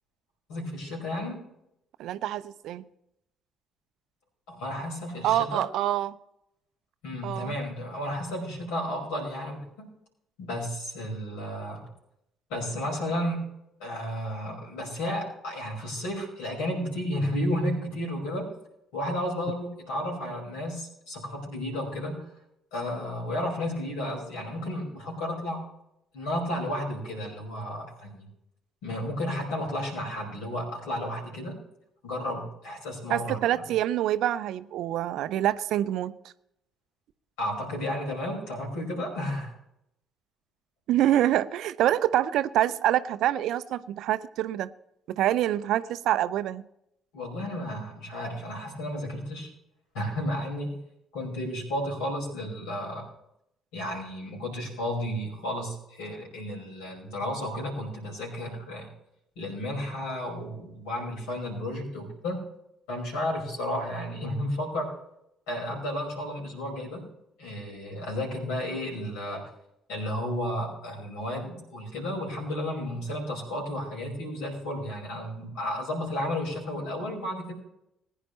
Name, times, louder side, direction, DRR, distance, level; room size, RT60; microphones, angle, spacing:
voice 1, 0.5-1.5 4.5-5.6 7.0-9.9 10.4-11.8 12.5-13.5 13.8-18.5 18.9-22.3 22.7-25.6 26.1-28.3 28.8-31.6 32.0-33.6 37.4-39.5 47.1-49.5 49.9-50.8 51.1-53.1 53.7-58.9 59.3-62.4 62.9-64.9 65.5-67.1 67.4-69.5 69.9-77.5, left 1 dB, 65° left, 0 dB, 5.2 m, -32 dB
voice 2, 2.0-2.8 5.2-6.1 7.2-7.6 33.1-36.1 40.9-44.7 45.2-46.6, right 12 dB, 60° right, 15 dB, 0.5 m, -26 dB
20.5 x 10.0 x 3.2 m, 0.79 s
figure-of-eight pair, 45°, 0 cm